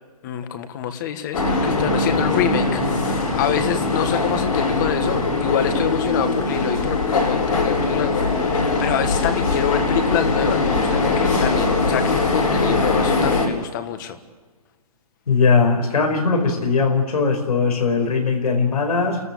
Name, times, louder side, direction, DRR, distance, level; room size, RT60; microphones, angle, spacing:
voice 1, 0.2-14.2, left 10 dB, 30° left, 9 dB, 1.5 m, -26 dB
sound 1, 1.3-13.5, left 3 dB, 70° left, 7.4 m, -21 dB
voice 2, 15.3-19.2, left 4 dB, 85° left, 2 dB, 5.1 m, -19 dB
29.0 x 14.0 x 8.5 m, 1.4 s
hypercardioid pair, 160°, 19 cm